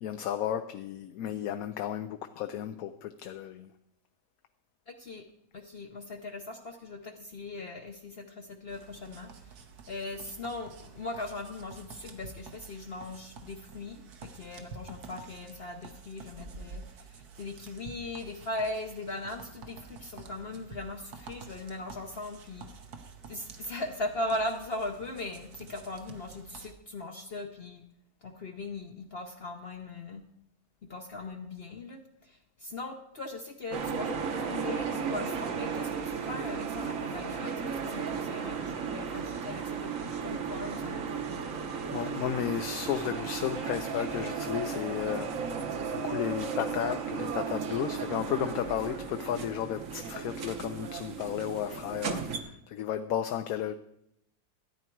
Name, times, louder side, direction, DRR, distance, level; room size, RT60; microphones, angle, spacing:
voice 1, 0.0-3.7 41.9-45.6 45.9-53.7, left 10 dB, 70° left, 1.0 m, -33 dB
voice 2, 4.9-5.2 5.5-9.5 9.9-22.7 23.3-27.9 28.2-30.2 30.8-41.2, left 2 dB, 50° left, 0.8 m, -39 dB
sound 1, 8.7-26.7, right 5 dB, 80° right, 1.6 m, -49 dB
sound 2, 33.7-52.4, right 6 dB, 60° right, 1.3 m, -35 dB
13.5 x 9.4 x 4.6 m
omnidirectional pair, 1.6 m